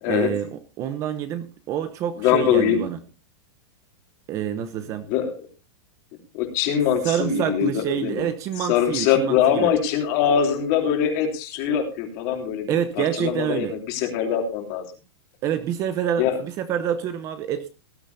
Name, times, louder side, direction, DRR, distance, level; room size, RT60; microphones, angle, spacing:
voice 1, 0.1-3.0 4.3-5.1 7.0-9.7 12.7-13.7 15.4-17.7, right 9 dB, 20° right, 12 dB, 0.8 m, -27 dB
voice 2, 2.2-2.8 5.1-5.4 6.3-8.2 8.6-12.7 13.0-14.8 16.2-16.4, left 8 dB, 35° left, 3 dB, 3.3 m, -22 dB
18.5 x 12.0 x 2.7 m, 0.30 s
supercardioid pair, 175°, 14 cm